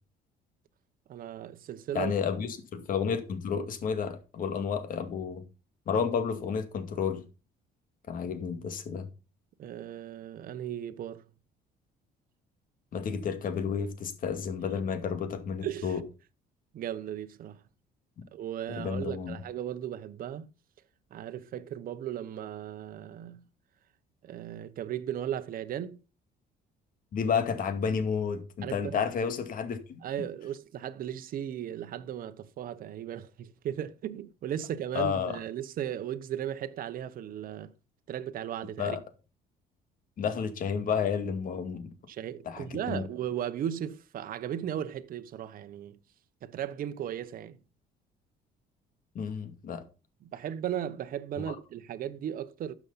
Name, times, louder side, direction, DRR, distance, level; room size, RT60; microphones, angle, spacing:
voice 1, 1.1-2.1 9.6-11.2 15.6-16.0 16.7-17.6 18.3-20.5 21.1-23.4 24.2-26.0 28.6-29.0 30.0-37.7 38.1-39.0 42.1-46.0 46.4-47.6 50.2-52.7, right 10 dB, 55° right, 1.0 m, -36 dB
voice 2, 1.9-5.4 5.9-7.2 8.1-9.1 12.9-16.0 18.7-19.4 27.1-30.0 34.9-35.3 38.8-39.0 40.2-41.9 42.5-43.0 49.1-49.8 51.5-51.6, left 6 dB, 55° left, 2.3 m, -31 dB
12.5 x 7.2 x 4.1 m
cardioid pair, 110°, 17 cm